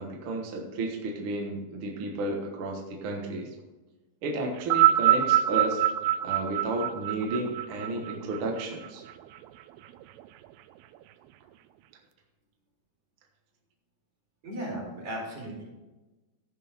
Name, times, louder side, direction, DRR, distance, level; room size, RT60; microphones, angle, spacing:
voice 1, 0.0-3.5 4.2-5.8 6.2-9.0, right 2 dB, 70° right, 1 dB, 1.3 m, -32 dB
sound 1, 4.6-9.1 10.0-10.1, right 12 dB, 85° right, 2.5 m, -24 dB
voice 2, 14.4-15.7, right 1 dB, 45° right, -4 dB, 5.2 m, -36 dB
14.5 x 6.5 x 4.3 m, 1.1 s
omnidirectional pair, 4.5 m